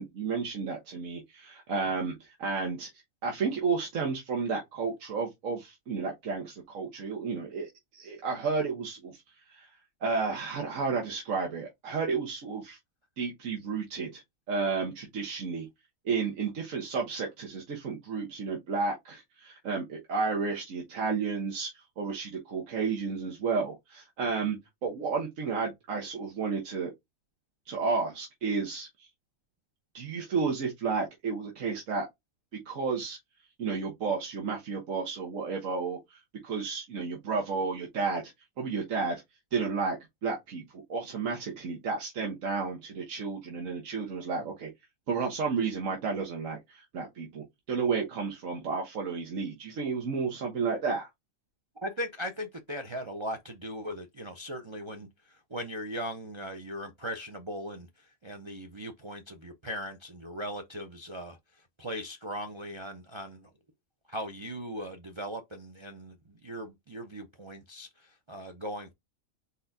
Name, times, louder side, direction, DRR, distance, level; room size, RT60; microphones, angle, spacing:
voice 1, 0.0-2.9 3.2-9.7 10.0-12.8 13.2-14.2 14.5-15.7 16.0-24.6 24.8-26.9 27.7-29.1 29.9-32.1 32.6-33.2 33.6-39.2 39.5-40.0 40.2-40.6 40.9-44.7 45.1-51.1, right 4 dB, 85° right, 1.5 m, -32 dB
voice 2, 51.8-61.4 61.8-63.5 64.1-68.9, equal, 40° right, 0.4 m, -39 dB
4.3 x 4.0 x 2.6 m
omnidirectional pair, 1.3 m